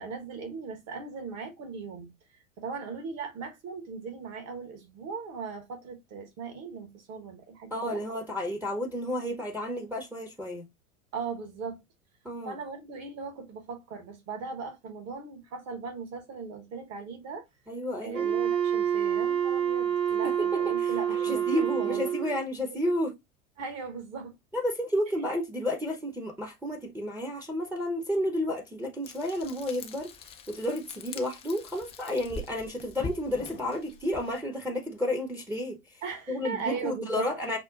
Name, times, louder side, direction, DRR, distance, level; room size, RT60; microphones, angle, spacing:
voice 1, 0.0-8.0 11.1-11.8 12.4-17.4 18.0-22.3 23.6-24.3 36.0-37.3, right 5 dB, 40° right, 1.3 m, -39 dB
voice 2, 7.7-10.6 12.2-12.6 17.7-18.4 20.2-23.1 24.5-30.1 30.5-36.0 36.3-37.6, left 1 dB, 5° right, 0.8 m, -31 dB
Wind instrument woodwind instrument, 18.1-22.4, right 9 dB, 70° right, 1.5 m, -27 dB
Frying (food), 29.0-34.4, left 3 dB, 15° left, 0.3 m, -43 dB
5.8 x 2.2 x 2.4 m
hypercardioid pair, 90°, 41 cm